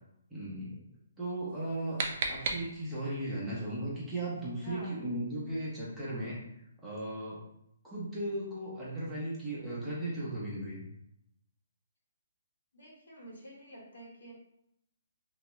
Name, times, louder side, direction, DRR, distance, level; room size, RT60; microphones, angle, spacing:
voice 1, 0.3-0.8 1.2-2.0 2.3-6.4 6.8-7.4 7.8-10.8, right 1 dB, 5° right, -8 dB, 0.8 m, -36 dB
sound 1, 1.5-3.2, right 4 dB, 45° right, 0.4 m, -36 dB
voice 2, 4.6-5.0 12.7-14.3, right 1 dB, 80° left, -3 dB, 1.2 m, -48 dB
2.8 x 2.2 x 3.0 m, 0.78 s
hypercardioid pair, 155°, 0 cm